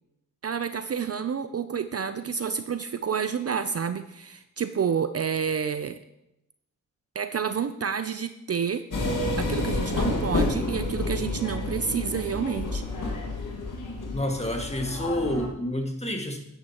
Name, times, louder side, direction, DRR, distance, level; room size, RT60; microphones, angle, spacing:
voice 1, 0.4-6.0 7.1-8.8 9.4-12.8, right 7 dB, 45° right, 10 dB, 0.5 m, -29 dB
sound 1, 8.9-15.5, left 2 dB, 65° left, 2.0 m, -29 dB
voice 2, 14.1-16.4, left 1 dB, 20° left, 3 dB, 1.9 m, -29 dB
10.5 x 9.4 x 3.0 m, 0.87 s
cardioid pair, 55°, 33 cm